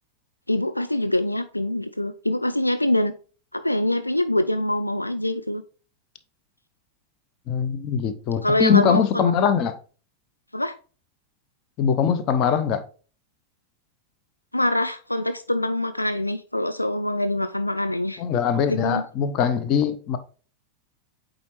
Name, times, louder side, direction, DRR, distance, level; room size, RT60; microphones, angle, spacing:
voice 1, 0.5-3.1 3.5-5.6 8.4-9.3 10.5-10.7 14.5-18.2 18.7-19.0, left 1 dB, 85° left, 0.3 m, -24 dB
voice 2, 7.5-9.7 11.8-12.8 18.2-20.2, left 7 dB, 35° left, 0.7 m, -22 dB
8.4 x 3.9 x 3.1 m
figure-of-eight pair, 90°, 0 cm